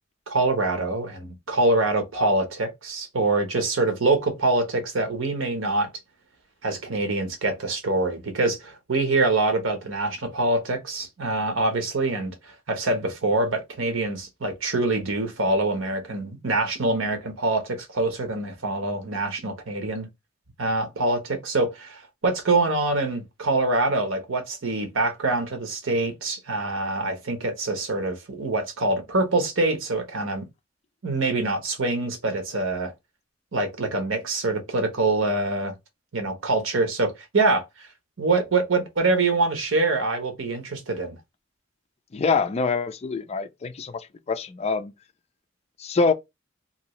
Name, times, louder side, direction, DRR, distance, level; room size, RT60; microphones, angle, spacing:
voice 1, 0.3-5.9 6.6-20.1 20.6-30.5 31.0-32.9 33.5-35.7 36.1-37.9 38.2-41.2, right 2 dB, 80° right, 0.9 m, -25 dB
voice 2, 42.1-44.9 45.8-46.1, left 4 dB, 35° left, 0.4 m, -25 dB
2.7 x 2.7 x 3.0 m
head